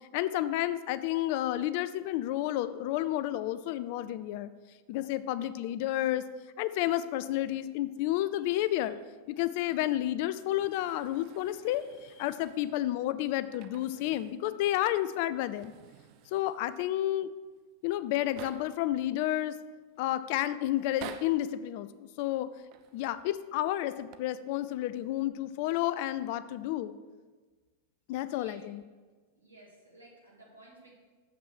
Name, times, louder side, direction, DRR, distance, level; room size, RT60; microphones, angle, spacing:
voice 1, 0.1-4.5 4.9-6.2 6.6-8.9 9.3-15.7 16.3-17.3 17.8-19.5 20.0-22.5 22.9-26.9 28.1-28.8, left 14 dB, 45° left, 14 dB, 0.4 m, -31 dB
sound 1, 10.4-12.9 13.4-14.5 14.7-14.8 15.3-16.8 17.6-17.7 17.9-18.9 19.5-20.0 20.8-21.5 22.6-23.2 23.9-24.2, right 8 dB, 40° right, 0.5 m, -50 dB
voice 2, 28.3-28.6 29.3-30.9, right 2 dB, 80° right, -3 dB, 2.3 m, -55 dB
7.0 x 5.9 x 6.2 m, 1.4 s
figure-of-eight pair, 90°, 0 cm